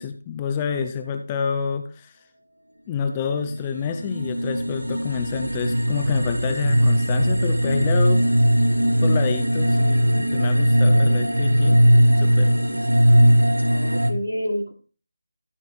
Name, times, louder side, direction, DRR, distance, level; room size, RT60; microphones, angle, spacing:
voice 1, 0.0-2.1 2.9-8.2 9.0-11.8 12.2-12.5, left 6 dB, 20° left, 6 dB, 0.9 m, -28 dB
sound 1, 3.4-14.1, equal, 85° right, 1.9 m, -19 dB
voice 2, 13.5-14.7, equal, 85° left, -3 dB, 3.3 m, -28 dB
14.5 x 5.4 x 4.4 m, 0.38 s
figure-of-eight pair, 160°, 0 cm